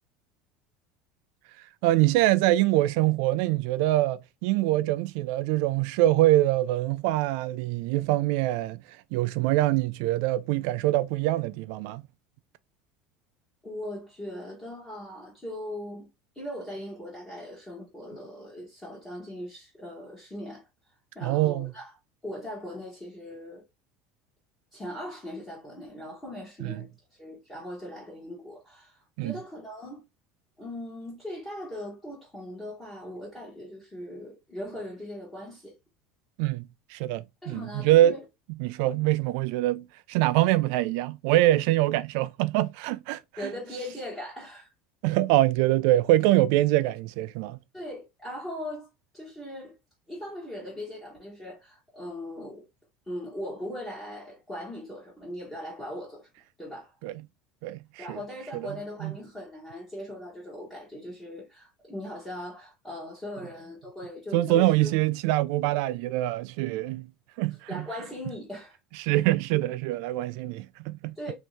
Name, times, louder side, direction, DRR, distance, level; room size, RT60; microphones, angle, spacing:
voice 1, 1.8-12.0 21.2-21.7 26.6-26.8 29.2-29.4 36.4-38.2 38.6-43.5 45.0-47.6 57.0-57.2 57.6-58.2 58.5-59.2 64.3-67.1 67.4-67.9 68.9-71.3, right 15 dB, 60° right, 0.3 m, -24 dB
voice 2, 13.6-16.1 16.3-20.6 21.1-21.9 22.2-23.6 24.7-26.9 27.2-30.0 30.6-35.7 37.4-38.2 43.4-44.7 47.7-48.9 49.1-49.7 50.1-52.7 53.1-56.3 56.6-56.9 58.0-64.9 67.7-68.8 71.2-71.3, left 1 dB, 10° left, 1.0 m, -39 dB
3.4 x 2.6 x 3.0 m
cardioid pair, 175°, 0 cm